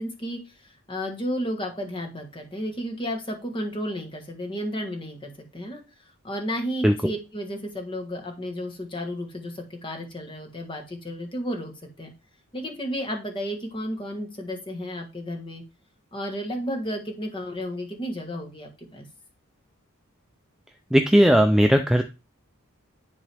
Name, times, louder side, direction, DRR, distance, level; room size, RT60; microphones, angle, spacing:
voice 1, 0.0-5.8 6.2-11.7 12.0-12.1 12.5-15.6 16.1-19.1, equal, 25° left, 2 dB, 1.4 m, -32 dB
voice 2, 20.9-22.0, equal, ahead, 5 dB, 0.3 m, -18 dB
10.5 x 3.8 x 3.4 m, 0.29 s
head